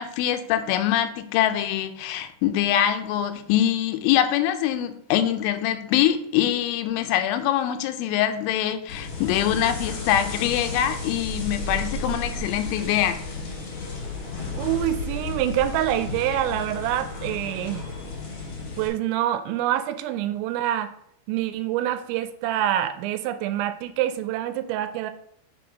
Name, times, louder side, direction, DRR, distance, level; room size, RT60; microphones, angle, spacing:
voice 1, 0.0-13.2, left 11 dB, 85° left, 9 dB, 3.0 m, -24 dB
sound 1, 8.9-18.9, left 3 dB, 70° left, 1.5 m, -33 dB
voice 2, 14.5-17.9 18.8-20.9 21.3-25.1, right 12 dB, 85° right, 10 dB, 2.8 m, -26 dB
6.3 x 3.9 x 5.1 m, 0.69 s
omnidirectional pair, 5.4 m